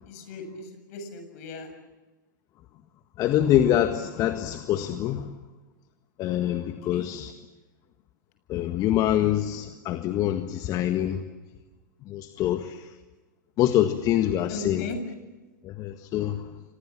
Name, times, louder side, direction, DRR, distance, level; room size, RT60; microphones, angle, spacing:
voice 1, 0.1-1.7 6.9-7.1 14.5-15.0, left 4 dB, 50° left, 8 dB, 7.4 m, -37 dB
voice 2, 3.2-5.3 6.2-7.3 8.5-11.2 12.1-12.9 13.6-14.9 15.6-16.5, left 12 dB, 35° left, 8 dB, 1.7 m, -25 dB
29.0 x 25.5 x 7.5 m, 1.2 s
hypercardioid pair, 105°, 11 cm